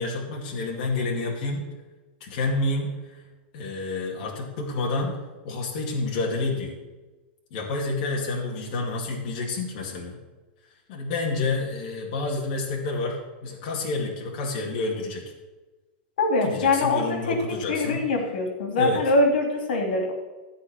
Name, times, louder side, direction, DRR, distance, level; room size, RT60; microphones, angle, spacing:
voice 1, 0.0-1.6 2.2-3.2 3.5-5.2 5.4-6.8 7.5-10.2 10.9-15.2 16.4-18.0 18.8-19.0, left 3 dB, 50° left, -2 dB, 2.4 m, -29 dB
voice 2, 16.2-20.1, left 2 dB, 85° left, 3 dB, 2.8 m, -23 dB
14.0 x 4.7 x 8.8 m, 1.2 s
supercardioid pair, 165°, 5 cm